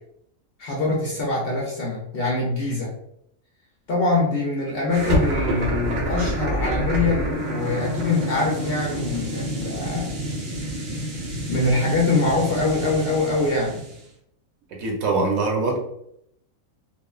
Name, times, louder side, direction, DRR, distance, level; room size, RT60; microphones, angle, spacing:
voice 1, 0.6-2.9 3.9-10.1 11.5-13.8, left 3 dB, 60° left, -4 dB, 0.6 m, -24 dB
sound 1, 4.9-14.0, right 1 dB, 60° right, 0.8 m, -28 dB
voice 2, 14.7-15.8, right 3 dB, 80° right, -1 dB, 1.1 m, -23 dB
3.0 x 2.1 x 2.3 m, 0.75 s
omnidirectional pair, 1.4 m